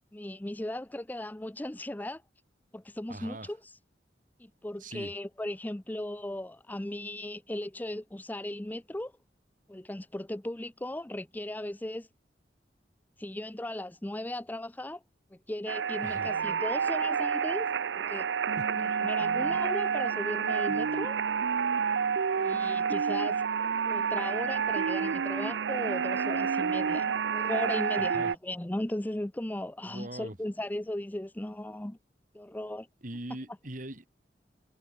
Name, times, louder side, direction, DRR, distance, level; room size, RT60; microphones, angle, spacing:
voice 1, 0.0-2.2 2.7-3.6 4.4-9.1 9.7-12.1 13.2-15.0 15.3-18.3 18.8-21.2 22.4-23.4 23.8-32.0 32.3-32.9, left 1 dB, 10° left, 0.5 m, -37 dB
voice 2, 3.1-3.5 4.8-5.1 16.0-16.3 18.6-18.7 28.1-28.3 29.9-30.4 33.0-34.1, right 1 dB, 50° right, 2.7 m, -41 dB
sound 1, 15.7-28.4, right 6 dB, 85° right, 0.5 m, -29 dB
head